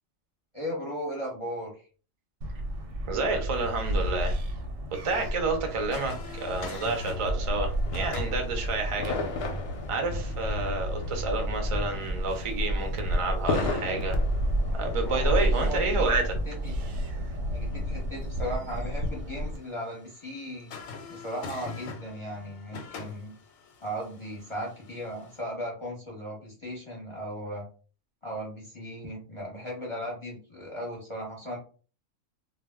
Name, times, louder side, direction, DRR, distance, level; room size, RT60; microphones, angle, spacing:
voice 1, 0.5-1.8 15.0-16.0 16.5-16.7 17.5-20.7 21.1-23.3 23.8-27.6 28.2-31.6, equal, 30° left, -3 dB, 0.7 m, -37 dB
sound 1, 2.4-19.6, equal, 85° right, 1.0 m, -31 dB
voice 2, 3.1-4.4 4.9-9.1 9.9-14.2 14.7-16.3, right 3 dB, 45° right, 4 dB, 0.4 m, -30 dB
sound 2, 5.7-25.4, left 4 dB, 90° left, 1.0 m, -47 dB
sound 3, 7.8-15.2, left 3 dB, 60° left, 0.7 m, -35 dB
2.2 x 2.0 x 3.4 m, 0.38 s
omnidirectional pair, 1.3 m